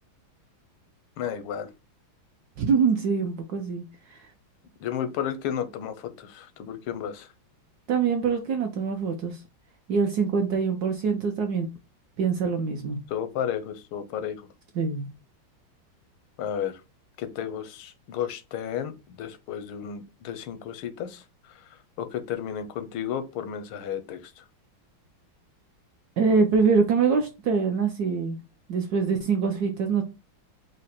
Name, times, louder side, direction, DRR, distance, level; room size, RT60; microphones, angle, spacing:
voice 1, 1.2-1.7 2.6-2.7 4.8-7.3 13.1-14.5 16.4-16.8 17.2-21.2 22.0-24.3, left 9 dB, 85° left, 1.5 m, -33 dB
voice 2, 2.6-3.8 4.1-4.2 7.9-9.4 9.9-11.7 12.2-13.0 14.8-15.1 26.2-28.4 28.7-30.0, right 5 dB, 70° right, 0.9 m, -24 dB
5.0 x 2.1 x 4.1 m
omnidirectional pair, 2.3 m